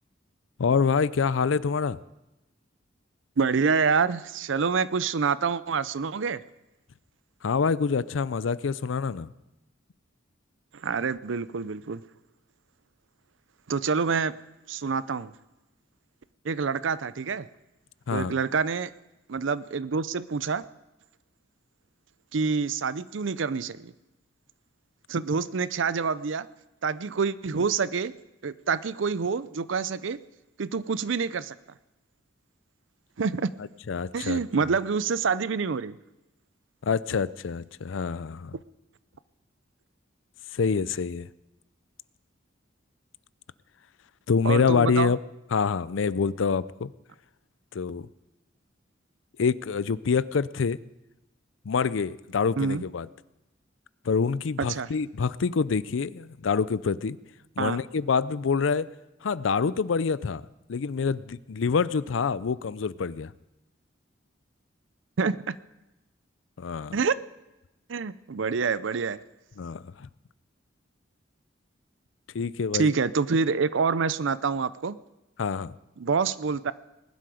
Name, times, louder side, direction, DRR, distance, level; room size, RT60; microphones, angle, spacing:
voice 1, 0.6-2.0 7.4-9.3 18.1-18.3 33.9-34.4 36.8-38.6 40.5-41.3 44.3-45.2 45.5-46.9 47.7-48.1 49.4-50.8 51.7-53.1 54.0-57.2 57.6-58.9 59.2-63.3 66.6-67.0 69.6-70.1 72.3-72.9 75.4-75.7, left 5 dB, 80° left, 18 dB, 0.5 m, -26 dB
voice 2, 3.4-6.4 10.8-12.0 13.7-14.3 14.7-15.3 16.4-17.5 18.1-18.9 19.3-20.6 22.3-23.9 25.1-26.5 26.8-28.1 28.4-30.2 30.6-31.5 33.2-33.5 34.1-35.9 44.4-45.1 52.6-52.8 54.6-54.9 57.6-57.8 65.2-65.5 66.9-67.2 67.9-69.2 72.7-75.0 76.0-76.7, right 5 dB, 75° right, 17 dB, 0.5 m, -27 dB
20.0 x 11.5 x 5.0 m, 0.96 s
head